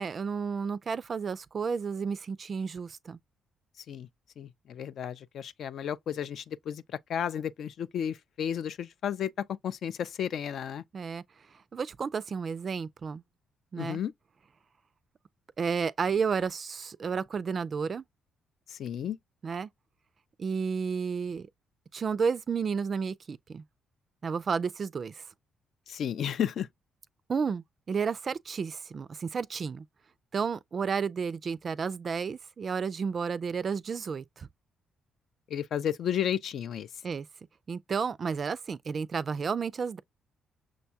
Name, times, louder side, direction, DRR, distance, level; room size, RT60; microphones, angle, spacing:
voice 1, 0.0-3.2 10.9-11.2 11.7-13.2 13.7-14.0 15.6-18.0 19.4-19.7 20.4-21.5 21.9-23.6 24.2-25.2 27.3-29.8 30.3-34.5 37.0-37.3 37.7-40.0, right 5 dB, 45° right, 0.3 m, -32 dB
voice 2, 4.4-6.8 7.1-9.3 9.6-10.8 13.8-14.1 18.7-19.2 25.9-26.7 35.5-36.9, left 9 dB, 65° left, 0.4 m, -32 dB
6.2 x 2.2 x 2.7 m
cardioid pair, 90°, 0 cm